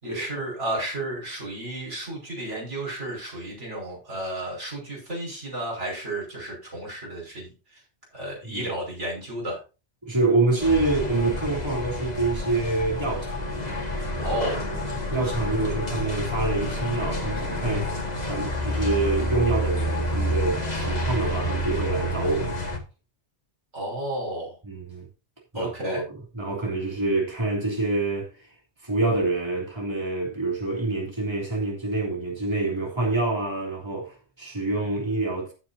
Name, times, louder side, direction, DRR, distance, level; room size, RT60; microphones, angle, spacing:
voice 1, 0.0-7.8 8.1-9.6 14.2-14.6 23.7-24.6 25.5-26.0, right 1 dB, 80° right, 6.0 m, -32 dB
voice 2, 10.0-13.5 14.3-14.8 15.1-22.7 24.6-25.1 25.5-28.5 28.8-35.5, right 2 dB, 25° right, 3.2 m, -27 dB
sound 1, 10.6-22.8, left 1 dB, 35° left, 1.9 m, -29 dB
sound 2, 13.4-21.6, equal, 65° right, 4.9 m, -36 dB
16.0 x 7.3 x 2.8 m
omnidirectional pair, 1.2 m